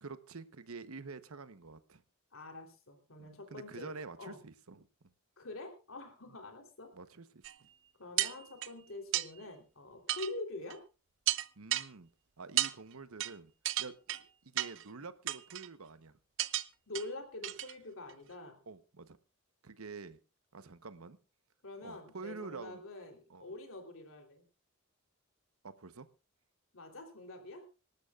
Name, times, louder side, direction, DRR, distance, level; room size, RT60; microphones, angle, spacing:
voice 1, 0.0-2.0 3.2-4.9 6.9-7.7 11.6-12.1 12.4-13.5 13.8-16.2 18.7-19.2 19.6-20.2 20.5-21.2 21.8-22.8 23.3-23.4 25.6-26.1, right 4 dB, 85° right, 12 dB, 1.0 m, -47 dB
voice 2, 2.3-3.9 4.2-4.4 5.4-6.9 8.0-10.8 16.9-18.6 21.6-24.5 26.7-27.7, left 2 dB, 70° left, 4 dB, 3.4 m, -45 dB
sound 1, 7.4-7.5 8.2-8.7 9.1-9.3 10.1-10.3 10.7-10.8 11.3-11.9 12.6-12.7 13.2-13.3 13.7-14.2 14.6-14.8 15.3-15.7 16.4-16.7 17.0-17.1 17.4-17.7 18.1-18.2, right 14 dB, 65° right, 0.6 m, -33 dB
25.5 x 12.5 x 2.4 m, 0.31 s
head